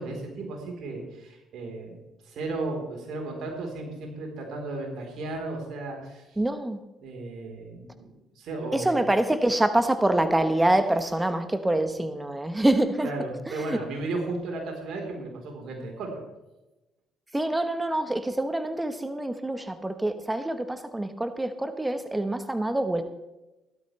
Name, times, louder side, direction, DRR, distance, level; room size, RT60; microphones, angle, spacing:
voice 1, 0.0-2.0 2.2-6.4 7.0-9.0 13.0-16.2, right 2 dB, 65° right, 1 dB, 3.9 m, -35 dB
voice 2, 6.4-6.8 8.7-13.1 13.5-13.8 17.3-23.0, right 1 dB, 15° right, 9 dB, 1.2 m, -25 dB
15.5 x 12.5 x 3.3 m, 1.0 s
hypercardioid pair, 50°, 0 cm